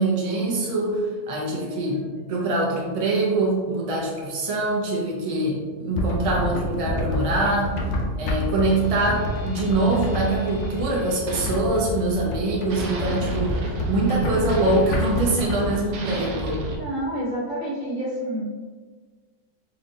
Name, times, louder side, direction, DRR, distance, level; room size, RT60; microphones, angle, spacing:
voice 1, 0.0-2.0 2.3-7.7 8.2-16.6, right 2 dB, 40° right, -4 dB, 0.5 m, -24 dB
voice 2, 1.5-2.1 16.7-18.5, equal, 60° right, -5 dB, 1.5 m, -30 dB
sound 1, 5.9-16.0, left 1 dB, 80° left, 1.1 m, -28 dB
sound 2, 8.7-12.4 12.7-16.8, right 2 dB, 75° right, 1.1 m, -34 dB
3.9 x 3.3 x 2.7 m, 1.4 s
omnidirectional pair, 1.6 m